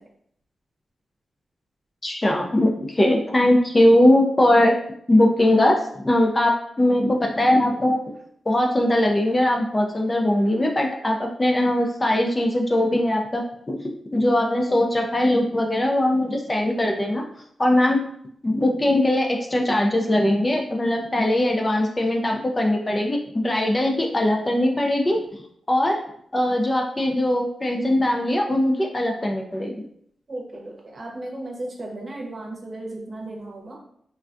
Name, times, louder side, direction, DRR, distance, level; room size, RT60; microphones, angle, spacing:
voice 1, 2.0-4.8 5.1-8.0 8.5-13.8 14.1-17.2 17.6-18.0 18.4-25.2 25.7-26.0 26.3-29.8, left 1 dB, 25° left, 1 dB, 0.4 m, -20 dB
voice 2, 30.3-33.8, right 2 dB, 40° right, -1 dB, 0.8 m, -35 dB
3.3 x 2.2 x 2.5 m, 0.68 s
cardioid pair, 90°, 0 cm